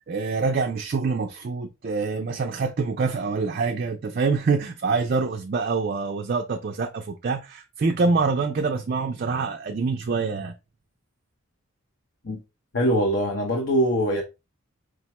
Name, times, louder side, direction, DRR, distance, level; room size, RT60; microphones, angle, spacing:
voice 1, 0.0-10.5, right 4 dB, 45° right, 0.4 m, -25 dB
voice 2, 12.7-14.2, equal, 55° left, 0.7 m, -22 dB
4.7 x 2.1 x 2.9 m
head